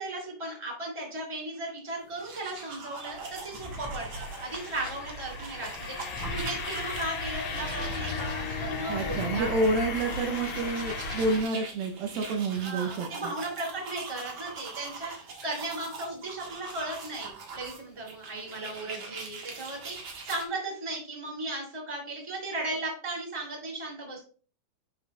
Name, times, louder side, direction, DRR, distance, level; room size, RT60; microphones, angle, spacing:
voice 1, 0.0-9.5 12.5-24.2, right 2 dB, 10° right, -2 dB, 2.4 m, -36 dB
sound 1, 2.0-20.4, right 4 dB, 55° right, 1.5 m, -43 dB
sound 2, 3.1-11.4, left 3 dB, 60° left, 2.3 m, -35 dB
voice 2, 8.9-13.3, right 2 dB, 80° right, 4 dB, 2.7 m, -29 dB
11.0 x 5.8 x 2.3 m, 0.39 s
omnidirectional pair, 4.3 m